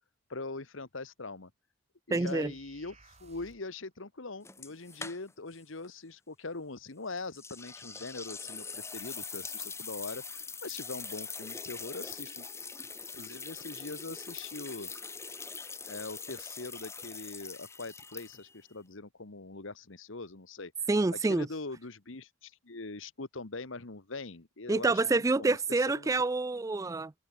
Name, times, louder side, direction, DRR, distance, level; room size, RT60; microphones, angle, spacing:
voice 1, 0.3-1.5 2.1-10.2 10.6-12.5 13.1-14.9 15.9-20.7 21.2-26.1, left 3 dB, 70° left, 1.5 m, -42 dB
voice 2, 2.1-2.5 20.9-21.5 24.7-27.1, right 3 dB, 15° right, 0.3 m, -27 dB
sound 1, 2.1-3.8, right 3 dB, 30° right, 6.8 m, -58 dB
sound 2, 4.4-5.6 5.8-5.9 7.3-18.6, left 5 dB, 15° left, 2.5 m, -43 dB
head